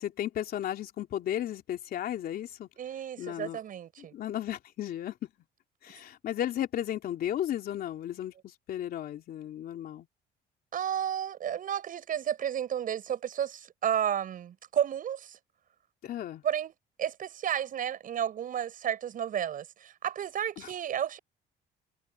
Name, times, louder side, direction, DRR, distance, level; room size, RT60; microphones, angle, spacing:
voice 1, 0.0-2.7 3.2-3.6 4.0-5.3 5.8-10.1 16.0-16.4 20.6-20.7, left 11 dB, 65° left, 3.3 m, -34 dB
voice 2, 2.8-4.1 10.7-15.4 16.4-16.7 17.0-21.2, right 9 dB, 55° right, 7.3 m, -32 dB
cardioid pair, 110°, 17 cm